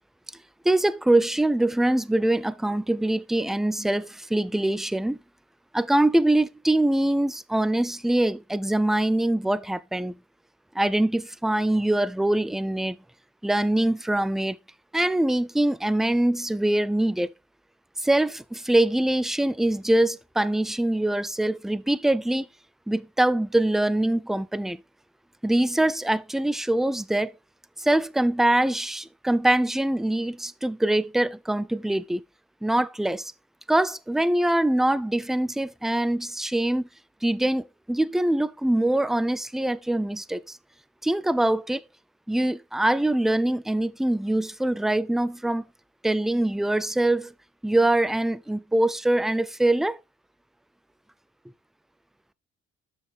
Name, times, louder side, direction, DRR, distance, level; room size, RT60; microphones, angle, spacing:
voice 1, 0.6-5.2 5.7-10.2 10.7-13.0 13.4-14.6 14.9-17.3 18.0-22.5 22.9-24.8 25.4-27.3 27.8-32.2 32.6-33.3 33.7-36.9 37.2-40.6 41.0-41.8 42.3-45.6 46.0-47.3 47.6-50.0, right 1 dB, ahead, 0.4 m, -23 dB
7.4 x 6.3 x 3.4 m
cardioid pair, 90°, 30 cm